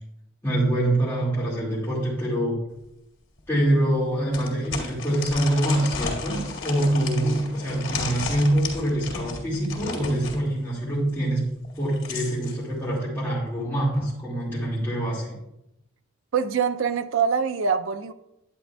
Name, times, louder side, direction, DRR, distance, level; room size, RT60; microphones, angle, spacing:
voice 1, 0.4-2.6 3.5-11.4 11.7-15.3, right 1 dB, 10° left, -9 dB, 2.1 m, -25 dB
sound 1, 2.8-2.9 3.4-3.5 4.3-10.4 11.6-12.6, left 4 dB, 80° left, 2.0 m, -33 dB
voice 2, 16.3-18.1, right 6 dB, 70° right, 11 dB, 0.4 m, -24 dB
10.5 x 9.1 x 2.3 m, 0.85 s
head